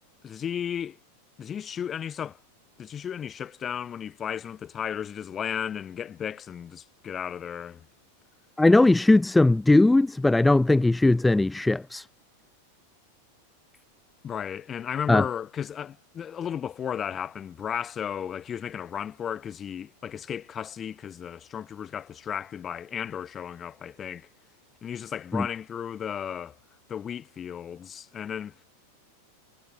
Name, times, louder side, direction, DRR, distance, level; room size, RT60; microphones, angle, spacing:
voice 1, 0.2-1.0 1.4-2.4 2.8-7.9 14.2-24.3 24.8-26.6 26.9-28.6, left 8 dB, 25° left, 3.2 m, -34 dB
voice 2, 8.6-12.1 15.1-15.2 25.3-25.4, left 2 dB, 5° left, 0.5 m, -19 dB
figure-of-eight pair, 90°, 0 cm